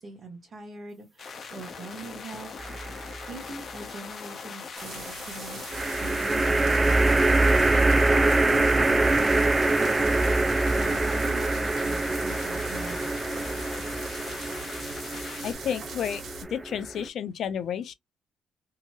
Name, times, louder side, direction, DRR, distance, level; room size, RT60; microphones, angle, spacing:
voice 1, 0.0-2.5 3.3-5.6 5.9-7.4 7.7-9.4 9.7-10.1 10.7-13.1, right 3 dB, 40° right, 1.1 m, -42 dB
sound 1, 1.2-15.5, left 5 dB, 50° left, 0.8 m, -41 dB
sound 2, 2.6-3.2 5.7-17.1, right 2 dB, 20° right, 0.3 m, -24 dB
sound 3, 4.8-16.4, right 4 dB, 65° right, 1.4 m, -42 dB
voice 2, 15.2-16.2 16.5-17.9, left 8 dB, 70° left, 0.4 m, -31 dB
2.8 x 2.8 x 2.2 m
cardioid pair, 90°, 0 cm